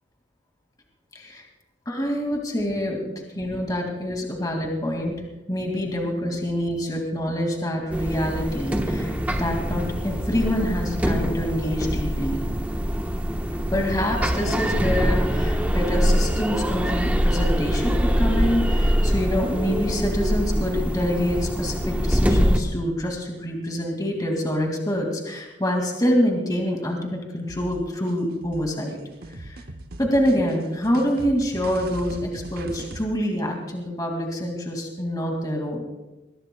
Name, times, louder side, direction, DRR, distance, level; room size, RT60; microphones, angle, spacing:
voice 1, 1.9-5.2 5.5-12.4 13.7-29.0 29.3-29.6 30.0-35.8, equal, 20° left, 1 dB, 2.2 m, -26 dB
sound 1, 7.9-22.6, equal, 10° right, 1.1 m, -24 dB
sound 2, 27.5-33.0, right 1 dB, 50° right, 1.0 m, -39 dB
21.0 x 20.0 x 2.3 m, 1.0 s
head